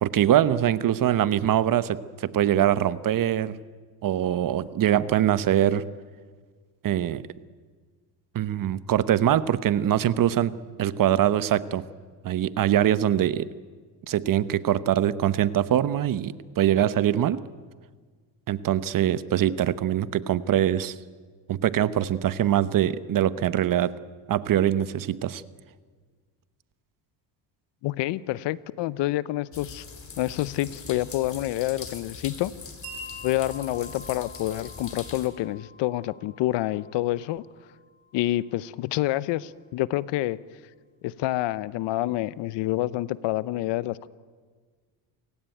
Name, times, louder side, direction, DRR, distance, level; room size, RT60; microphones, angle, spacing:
voice 1, 0.0-3.6 4.0-5.8 6.8-7.2 8.3-10.5 10.8-11.8 12.2-13.5 14.1-17.4 18.5-20.9 21.5-23.9 24.3-25.4, right 11 dB, 50° right, 15 dB, 1.0 m, -23 dB
voice 2, 27.8-29.8 30.2-32.5 33.2-37.4 38.1-40.4 41.0-44.1, left 16 dB, 75° left, 18 dB, 0.9 m, -28 dB
sound 1, 29.5-35.3, left 5 dB, 30° left, 3.9 m, -42 dB
Wind chime, 32.8-38.9, left 1 dB, 90° right, 5.2 m, -47 dB
28.0 x 17.5 x 9.2 m, 1.6 s
cardioid pair, 105°, 43 cm